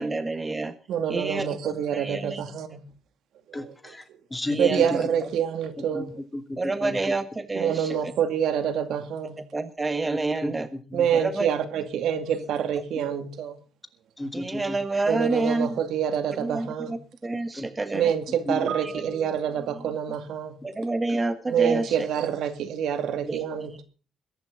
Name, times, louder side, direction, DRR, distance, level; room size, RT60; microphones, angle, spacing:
voice 1, 0.0-0.8 1.1-2.4 4.5-5.3 6.6-8.0 9.5-10.7 11.1-11.5 14.3-15.8 16.4-18.1 18.8-19.1 20.6-22.1 23.2-23.8, right 3 dB, 20° right, 1.6 m, -29 dB
voice 2, 0.9-2.9 3.5-3.7 4.6-6.1 7.5-9.4 10.9-13.6 15.1-16.9 17.9-20.6 21.5-23.8, right 8 dB, 80° right, 2.2 m, -27 dB
voice 3, 3.5-5.0 5.8-7.1 10.4-11.1 14.2-15.0 17.5-17.7 18.5-18.7 21.1-21.2, left 1 dB, 15° left, 2.4 m, -33 dB
21.5 x 11.5 x 3.9 m
cardioid pair, 90°, 0 cm